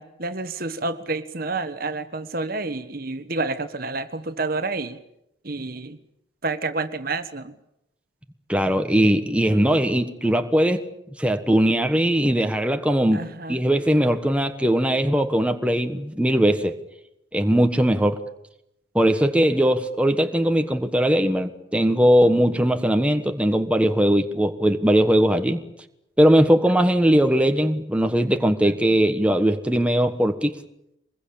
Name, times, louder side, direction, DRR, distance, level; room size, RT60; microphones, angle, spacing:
voice 1, 0.0-5.0 5.4-6.0 6.4-7.5 9.5-9.6 13.1-13.6 28.6-28.7, right 3 dB, 50° right, 1.4 m, -29 dB
voice 2, 8.5-10.8 11.2-16.8 17.3-18.2 18.9-25.6 26.2-30.6, equal, 5° right, 1.3 m, -20 dB
24.5 x 21.5 x 8.7 m
head